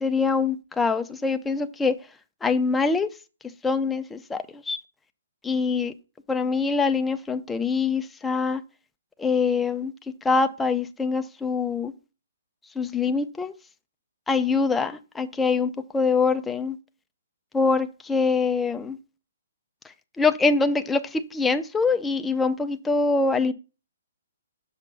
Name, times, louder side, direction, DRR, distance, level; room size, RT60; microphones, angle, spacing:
voice 1, 0.0-1.9 2.4-3.1 3.6-4.8 5.4-5.9 6.3-8.6 9.2-9.9 10.2-11.9 12.8-13.5 14.3-16.8 17.5-19.0 20.2-23.5, left 4 dB, 5° left, 0.3 m, -24 dB
7.2 x 5.3 x 4.0 m
hypercardioid pair, 175°, 0 cm